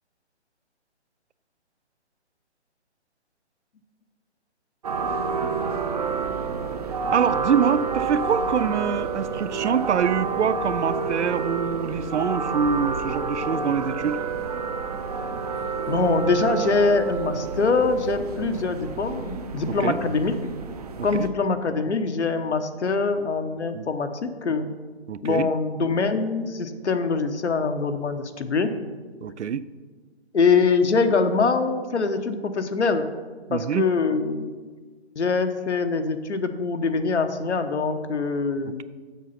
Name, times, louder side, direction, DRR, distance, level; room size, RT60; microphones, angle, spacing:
sound 1, 4.8-21.3, right 5 dB, 35° right, 0.6 m, -29 dB
voice 1, 7.1-14.2 19.8-20.0 21.2-21.3 23.7-23.9 25.1-25.5 29.2-29.7 33.5-33.8, right 7 dB, 90° right, 16 dB, 0.5 m, -25 dB
voice 2, 15.9-20.3 21.0-24.7 25.2-28.7 30.3-33.0 33.5-34.5 35.1-38.8, left 4 dB, 80° left, 7 dB, 1.1 m, -23 dB
7.3 x 6.7 x 5.8 m, 1.4 s
hypercardioid pair, 155°, 34 cm